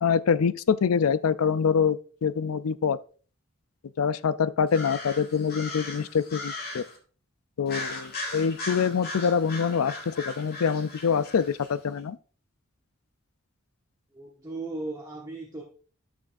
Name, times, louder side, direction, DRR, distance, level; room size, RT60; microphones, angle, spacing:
voice 1, 0.0-3.0 4.0-6.8 7.6-12.2, left 6 dB, 85° left, 0.5 m, -25 dB
sound 1, 4.7-7.0 7.7-11.7, left 2 dB, 45° left, 2.2 m, -38 dB
voice 2, 14.1-15.6, right 2 dB, 15° right, 1.1 m, -36 dB
13.0 x 6.3 x 2.6 m
head